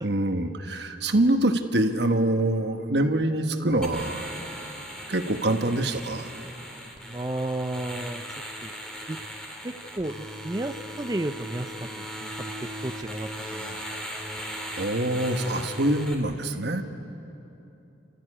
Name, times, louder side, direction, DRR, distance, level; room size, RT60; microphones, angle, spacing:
voice 1, 0.0-4.3 5.1-6.3 14.8-16.8, right 1 dB, 60° right, 6 dB, 1.4 m, -25 dB
sound 1, 3.8-16.1, equal, 5° left, 2.2 m, -38 dB
voice 2, 7.1-8.2 8.6-8.7 9.1-9.2 10.0-11.7 12.2-12.5 12.8-14.0, right 2 dB, 20° right, 6 dB, 0.4 m, -32 dB
29.5 x 13.5 x 9.9 m, 3.0 s
head